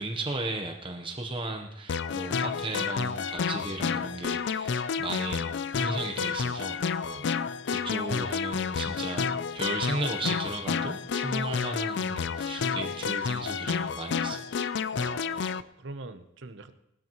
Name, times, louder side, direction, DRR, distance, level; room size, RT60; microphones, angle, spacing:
voice 1, 0.0-7.2 7.7-14.5, right 2 dB, 25° right, 3 dB, 0.9 m, -35 dB
sound 1, 1.9-15.6, left 6 dB, 60° left, 0.4 m, -30 dB
voice 2, 14.9-16.7, right 3 dB, 60° right, 10 dB, 0.8 m, -43 dB
19.0 x 13.0 x 3.1 m, 0.84 s
head